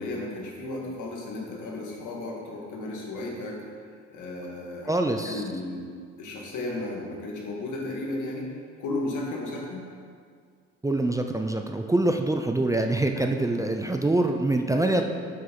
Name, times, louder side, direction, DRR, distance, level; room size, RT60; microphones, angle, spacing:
voice 1, 0.0-3.6 4.1-4.9 5.3-5.9 6.2-8.5 8.8-9.9 13.1-13.2 14.7-15.0, left 2 dB, 80° left, -2 dB, 2.0 m, -34 dB
voice 2, 4.9-5.4 10.8-15.0, right 2 dB, 10° right, 4 dB, 0.5 m, -25 dB
7.6 x 5.5 x 5.4 m, 2.1 s
cardioid pair, 90°, 30 cm